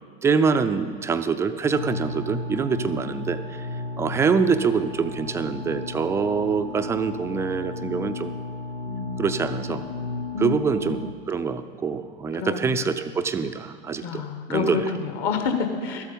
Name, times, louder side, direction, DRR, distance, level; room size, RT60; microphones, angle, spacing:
voice 1, 0.2-3.7 4.0-8.3 9.2-9.8 10.4-14.8, right 5 dB, 10° right, 10 dB, 0.3 m, -25 dB
sound 1, 1.7-11.1, left 3 dB, 90° left, 0.6 m, -34 dB
voice 2, 8.9-9.9 10.3-11.0 12.3-12.9 14.0-16.0, left 5 dB, 45° left, 6 dB, 1.4 m, -29 dB
13.0 x 8.2 x 5.2 m, 2.1 s
figure-of-eight pair, 85°, 30 cm